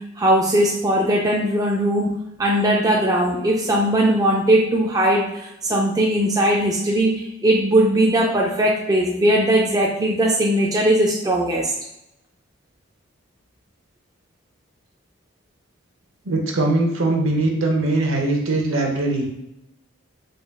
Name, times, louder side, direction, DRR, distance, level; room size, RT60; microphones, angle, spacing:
voice 1, 0.0-11.7, right 1 dB, 15° right, -2 dB, 0.3 m, -19 dB
voice 2, 16.2-19.3, right 2 dB, 70° right, 1 dB, 0.8 m, -21 dB
3.9 x 2.2 x 3.4 m, 0.85 s
head